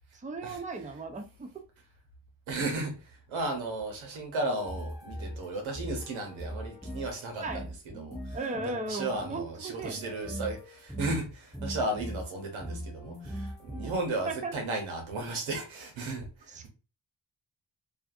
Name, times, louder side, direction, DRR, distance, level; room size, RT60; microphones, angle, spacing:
voice 1, 0.1-1.5 7.4-7.7 8.3-10.1 13.8-13.9 14.3-14.6 16.5-16.7, right 3 dB, 15° right, 0.5 m, -36 dB
voice 2, 2.5-3.0 3.3-7.7 8.0-8.2 8.6-16.2 16.5-16.7, right 2 dB, 90° right, 0.9 m, -34 dB
sound 1, 4.5-9.5 9.8-11.2 11.5-14.1, equal, ahead, 1.2 m, -40 dB
2.5 x 2.4 x 2.5 m
cardioid pair, 45°, 46 cm